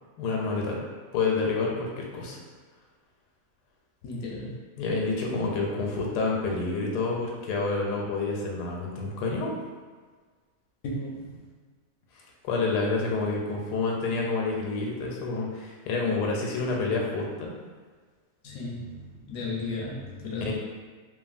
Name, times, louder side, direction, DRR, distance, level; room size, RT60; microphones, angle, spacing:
voice 1, 0.2-0.8 1.1-2.4 4.8-9.5 12.4-17.5 20.4-20.5, left 3 dB, 85° left, -1 dB, 1.1 m, -28 dB
voice 2, 4.0-4.6 10.8-11.3 18.4-20.5, left 2 dB, 70° left, -4 dB, 0.9 m, -35 dB
3.1 x 2.3 x 2.4 m, 1.5 s
omnidirectional pair, 1.7 m